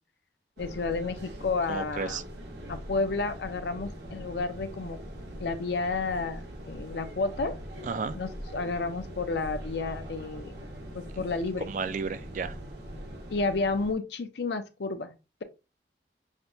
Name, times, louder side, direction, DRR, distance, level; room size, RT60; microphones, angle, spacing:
voice 1, 0.6-2.2 2.7-5.0 5.4-7.6 8.1-10.6 10.9-11.7 13.3-15.1, left 3 dB, 75° left, 0.6 m, -31 dB
sound 1, 0.6-13.9, equal, 65° right, 1.2 m, -42 dB
voice 2, 1.7-2.2 7.8-8.2 11.2-11.3 11.7-12.6, right 5 dB, 45° right, 0.3 m, -33 dB
6.3 x 2.2 x 2.6 m
head